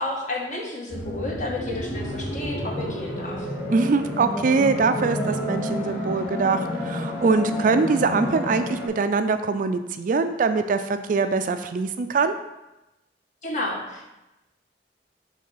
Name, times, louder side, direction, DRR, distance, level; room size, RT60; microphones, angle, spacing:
voice 1, 0.0-3.5 13.4-14.1, left 2 dB, 45° left, -2 dB, 1.4 m, -31 dB
sound 1, 0.9-8.9, left 1 dB, 75° left, 2.1 m, -30 dB
voice 2, 3.7-12.3, right 4 dB, 50° right, 9 dB, 0.4 m, -23 dB
6.5 x 3.4 x 5.5 m, 0.96 s
head